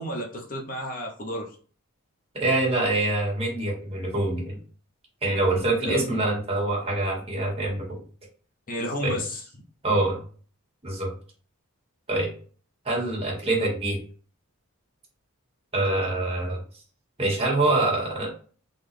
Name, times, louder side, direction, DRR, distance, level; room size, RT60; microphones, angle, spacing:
voice 1, 0.0-1.5 5.8-6.2 8.7-9.4, equal, 40° left, 0 dB, 0.9 m, -31 dB
voice 2, 2.3-4.6 5.2-8.0 9.0-9.2 9.8-10.2 10.8-11.1 12.1-12.3 12.9-14.0 15.7-16.6 17.2-18.3, right 2 dB, 25° right, -3 dB, 2.0 m, -25 dB
4.0 x 3.8 x 3.4 m, 0.41 s
head